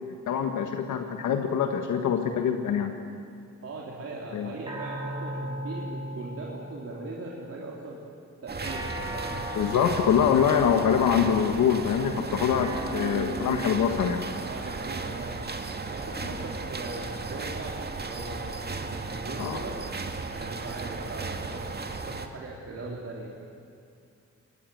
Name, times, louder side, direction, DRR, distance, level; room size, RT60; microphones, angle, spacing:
voice 1, 0.3-2.9 4.3-4.5 9.5-14.3 19.4-19.6, left 8 dB, 85° left, 5 dB, 1.6 m, -24 dB
voice 2, 3.6-8.0 8.4-10.2 14.4-15.4 15.9-19.7 20.3-23.3, right 2 dB, 50° right, -3 dB, 3.7 m, -40 dB
sound 1, 4.7-7.2 8.6-11.2 12.6-15.2, right 1 dB, 15° right, 5.9 m, -38 dB
sound 2, 8.5-22.3, right 3 dB, 35° right, 2.1 m, -35 dB
23.0 x 19.5 x 9.3 m, 2.4 s
cardioid pair, 85°, 30 cm